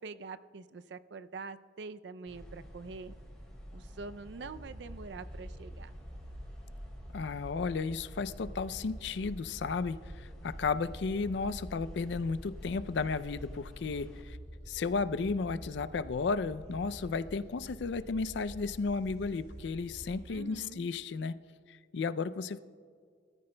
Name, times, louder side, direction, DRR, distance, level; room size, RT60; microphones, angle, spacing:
voice 1, 0.0-3.1 3.7-5.9 20.3-20.8, right 4 dB, 65° right, 13 dB, 0.4 m, -45 dB
sound 1, 2.3-14.2, equal, ahead, 3.0 m, -49 dB
sound 2, 4.5-20.4, equal, 40° right, 2.0 m, -48 dB
voice 2, 7.1-14.4 14.7-21.4 21.7-22.6, left 4 dB, 70° left, 14 dB, 0.4 m, -34 dB
20.0 x 13.5 x 2.2 m, 2.1 s
head